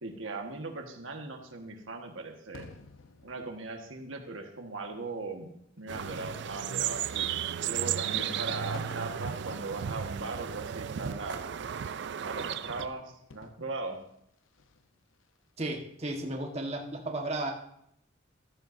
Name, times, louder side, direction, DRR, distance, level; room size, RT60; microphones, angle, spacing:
voice 1, 0.0-2.7 3.2-7.3 7.6-11.7 12.2-14.0, right 3 dB, 85° right, 3 dB, 1.4 m, -39 dB
Fireworks, 2.5-4.2 5.0-5.1 5.8-11.1 12.1-13.9 14.5-14.9, left 3 dB, 85° left, 0.7 m, -51 dB
sound 1, 5.9-12.9, right 9 dB, 60° right, 0.4 m, -34 dB
voice 2, 15.6-17.5, right 2 dB, 35° right, 1 dB, 1.3 m, -34 dB
14.5 x 12.5 x 2.6 m, 0.74 s
head